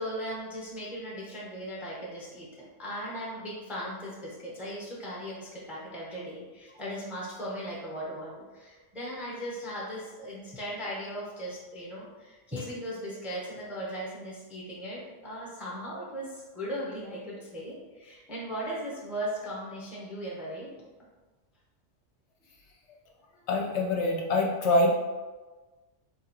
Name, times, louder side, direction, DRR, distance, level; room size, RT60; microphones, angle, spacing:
voice 1, 0.0-20.7, equal, ahead, -6 dB, 0.6 m, -38 dB
voice 2, 23.5-25.0, left 2 dB, 70° left, 0 dB, 0.8 m, -25 dB
3.9 x 2.4 x 2.9 m, 1.3 s
omnidirectional pair, 1.3 m